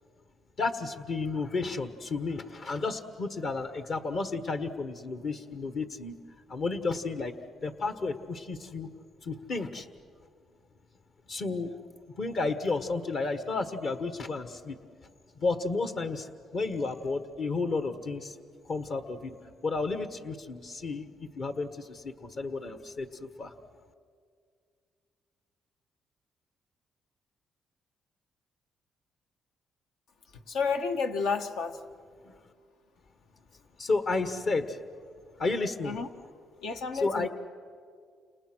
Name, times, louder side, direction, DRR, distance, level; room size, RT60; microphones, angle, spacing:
voice 1, 0.6-6.2 6.5-7.3 7.6-8.9 9.2-9.9 11.3-11.8 12.2-14.8 15.4-18.3 18.7-19.4 19.6-23.5 33.8-34.8 35.4-36.0 36.9-37.3, left 3 dB, 55° left, 1.5 m, -32 dB
voice 2, 30.5-31.8 35.8-36.1 36.6-37.3, left 5 dB, 85° left, 1.4 m, -30 dB
29.5 x 28.0 x 6.3 m
cardioid pair, 90°, 0 cm